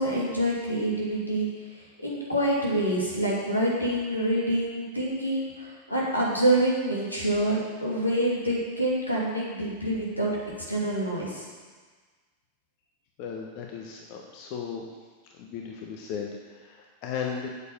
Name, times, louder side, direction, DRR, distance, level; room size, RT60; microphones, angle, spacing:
voice 1, 0.0-1.5 2.0-10.3 10.7-11.4, right 1 dB, 85° left, -4 dB, 2.8 m, -26 dB
voice 2, 13.2-14.8 15.4-17.5, left 7 dB, 45° left, 0 dB, 1.2 m, -36 dB
8.1 x 7.7 x 7.3 m, 1.4 s
figure-of-eight pair, 90°, 0 cm